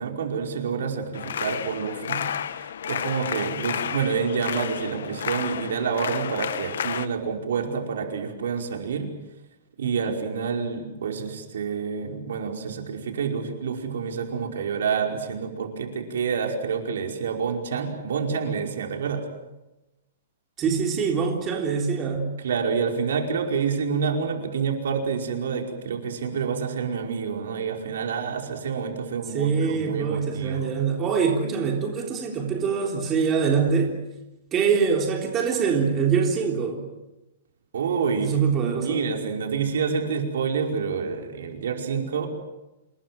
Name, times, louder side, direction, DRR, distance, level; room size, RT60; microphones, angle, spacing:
voice 1, 0.0-9.1 9.8-19.3 22.4-30.8 37.7-38.4 38.6-42.3, right 6 dB, 85° right, 3 dB, 5.1 m, -28 dB
sound 1, 1.1-7.1, left 8 dB, 80° left, 1.3 m, -31 dB
voice 2, 20.6-22.3 29.3-33.9 34.5-36.9 38.2-39.0, right 6 dB, 20° right, 2 dB, 3.5 m, -24 dB
28.0 x 21.5 x 7.8 m, 0.98 s
hypercardioid pair, 165°, 0 cm